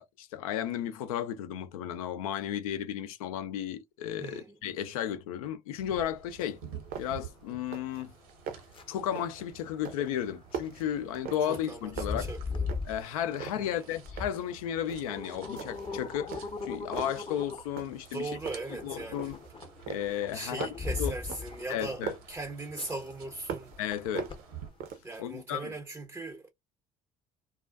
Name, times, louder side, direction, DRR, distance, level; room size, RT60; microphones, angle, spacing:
voice 1, 0.0-6.6 7.0-8.1 8.9-12.3 12.9-18.3 18.8-19.4 19.9-20.7 21.0-21.1 21.7-22.1 23.8-24.3 25.2-25.7, left 10 dB, 75° left, 0.4 m, -34 dB
voice 2, 4.2-4.6 11.5-12.7 13.6-13.8 18.1-19.4 20.3-23.7 25.0-26.5, right 2 dB, 10° right, 0.5 m, -39 dB
sound 1, 5.8-24.7, right 8 dB, 75° right, 0.9 m, -51 dB
sound 2, 6.1-25.0, left 4 dB, 30° left, 0.7 m, -41 dB
sound 3, 6.5-6.6 6.9-7.3 7.6-8.0 8.3-8.8 9.2-9.5 9.8-11.7 12.0-13.0 13.4-14.5 14.9-15.2 15.6-16.0 16.3-17.3 17.8-18.2 18.5-19.5 19.9-22.4 22.8-23.8 24.2-25.2, right 7 dB, 55° right, 0.6 m, -41 dB
2.4 x 2.3 x 2.2 m
hypercardioid pair, 60°, 18 cm